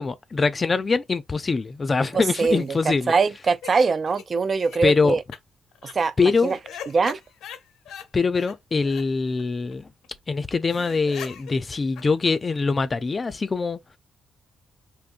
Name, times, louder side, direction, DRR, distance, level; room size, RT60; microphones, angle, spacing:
voice 1, 0.0-3.1 4.8-5.2 6.2-6.5 8.1-9.9 10.3-13.8, left 4 dB, 35° left, 0.5 m, -23 dB
voice 2, 2.1-2.8 3.1-5.2 5.9-6.6 6.9-7.2, right 4 dB, 45° right, 0.4 m, -23 dB
sound 1, 2.2-3.7 4.1-4.2 4.6-4.8 5.3-5.4 5.7-5.9 6.4-8.1 8.3-8.6 8.8-9.0 9.4-9.5 9.7-9.8 10.0-10.1 10.4-10.5 10.7-12.8, left 8 dB, 90° left, 0.7 m, -41 dB
3.7 x 2.6 x 2.5 m
cardioid pair, 70°, 0 cm